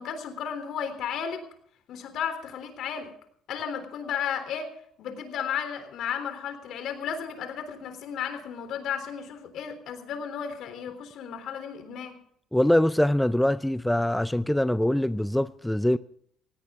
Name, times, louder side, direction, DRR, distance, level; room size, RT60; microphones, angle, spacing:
voice 1, 0.0-1.4 1.9-3.1 3.5-4.7 5.0-12.1, left 7 dB, 70° left, 3.5 m, -34 dB
voice 2, 12.5-16.0, left 1 dB, 5° left, 0.5 m, -23 dB
18.0 x 17.0 x 3.7 m
supercardioid pair, 80°, 0 cm